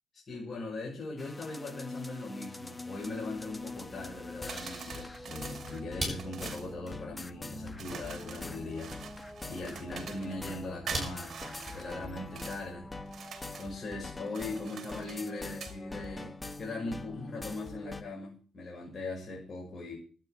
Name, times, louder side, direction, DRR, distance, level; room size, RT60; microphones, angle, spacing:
voice 1, 0.1-8.9 9.5-11.3 11.7-12.9 13.6-19.9, left 2 dB, 35° left, -3 dB, 6.2 m, -40 dB
sound 1, 1.2-18.0, left 3 dB, 15° left, 1.1 m, -44 dB
sound 2, 3.0-13.5, right 1 dB, 15° right, 7.9 m, -45 dB
sound 3, 4.5-6.7 7.8-10.4 10.9-12.6 13.1-13.8 14.3-15.8, right 7 dB, 55° right, 2.3 m, -45 dB
11.5 x 9.4 x 8.0 m, 0.40 s
cardioid pair, 125°, 0 cm